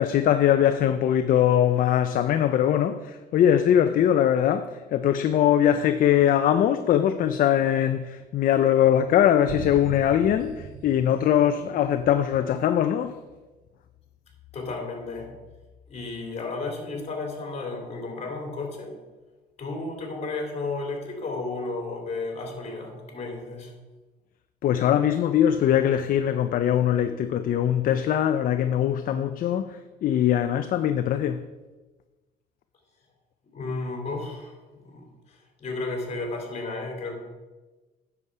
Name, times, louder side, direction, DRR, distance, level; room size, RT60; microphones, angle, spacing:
voice 1, 0.0-13.2 24.6-31.4, left 10 dB, 55° left, 0.5 m, -22 dB
sound 1, 9.5-12.2, right 6 dB, 60° right, 0.8 m, -39 dB
voice 2, 14.5-15.3 15.9-18.9 19.6-23.7 33.5-37.1, left 3 dB, 40° left, 3.2 m, -33 dB
9.7 x 7.0 x 4.8 m
cardioid pair, 110°, 17 cm